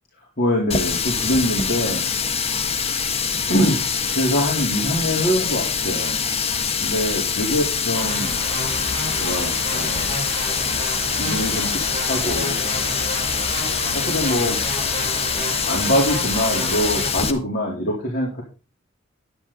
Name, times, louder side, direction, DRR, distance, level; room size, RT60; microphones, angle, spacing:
voice 1, 0.4-2.1 2.7-3.1 3.5-6.2 6.8-8.4 9.2-10.1 11.2-12.7 13.9-14.6 15.7-18.4, equal, 50° left, -3 dB, 3.6 m, -24 dB
Water tap faucet, 0.7-17.3, left 6 dB, 30° left, 1.3 m, -24 dB
sound 1, 7.9-17.1, right 1 dB, 30° right, 7.3 m, -30 dB
10.5 x 10.5 x 4.0 m, 0.32 s
head